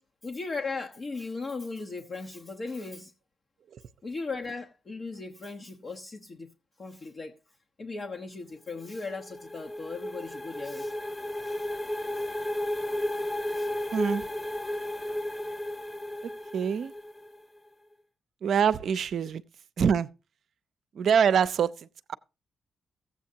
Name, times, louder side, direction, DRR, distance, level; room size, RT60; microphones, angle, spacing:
voice 1, 0.2-3.1 4.0-6.5 6.8-7.4 7.8-10.9 11.4-11.7 12.1-12.3 13.5-13.7, left 3 dB, 55° left, 1.0 m, -37 dB
sound 1, 8.8-17.4, left 1 dB, 15° left, 0.4 m, -34 dB
voice 2, 13.9-14.2 16.5-16.9 18.4-19.4 19.8-20.1 21.0-21.7 22.1-22.2, right 7 dB, 70° right, 0.5 m, -24 dB
15.0 x 8.0 x 2.8 m
supercardioid pair, 50°, 0 cm